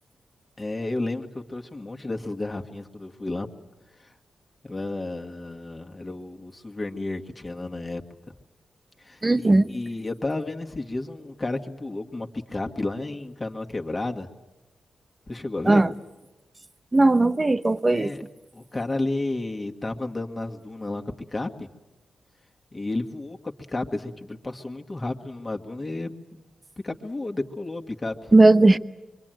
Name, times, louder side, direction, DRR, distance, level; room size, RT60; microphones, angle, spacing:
voice 1, 0.6-3.5 4.0-4.1 4.6-8.0 9.0-14.3 15.3-15.8 17.9-18.2 18.5-21.0 21.3-21.7 22.7-26.4 26.8-28.3, left 2 dB, 25° left, 2.0 m, -32 dB
voice 2, 9.2-9.7 15.7-15.9 16.9-18.1 28.3-28.8, right 2 dB, 20° right, 0.9 m, -17 dB
25.5 x 24.0 x 9.2 m
cardioid pair, 105°, 0 cm